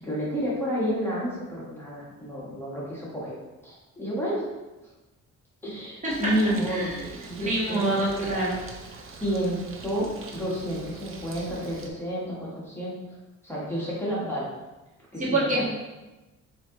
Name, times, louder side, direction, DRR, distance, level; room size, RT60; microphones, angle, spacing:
voice 1, 0.0-3.4 3.6-4.4 5.6-6.9 7.3-8.5 9.1-13.2 13.4-14.5 15.1-15.7, equal, 10° left, -7 dB, 1.3 m, -30 dB
voice 2, 6.0-6.3 6.7-7.0 7.4-8.6 15.2-15.7, right 2 dB, 25° right, -7 dB, 1.3 m, -26 dB
Bird, 6.1-11.9, right 3 dB, 45° right, 0.6 m, -43 dB
4.3 x 2.8 x 3.7 m, 1.1 s
cardioid pair, 90°, 30 cm